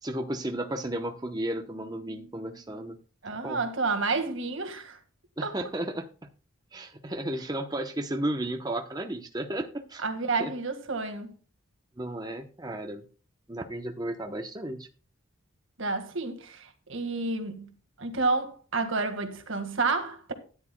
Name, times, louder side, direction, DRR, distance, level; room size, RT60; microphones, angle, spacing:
voice 1, 0.0-3.0 3.4-3.7 5.4-6.3 6.7-10.0 10.4-10.5 12.0-13.1 13.5-14.9, right 1 dB, 20° right, 0.8 m, -33 dB
voice 2, 3.2-5.0 5.4-5.6 10.0-11.3 15.8-17.7 18.0-20.3, right 3 dB, 65° right, 1.7 m, -30 dB
13.5 x 10.0 x 2.2 m
head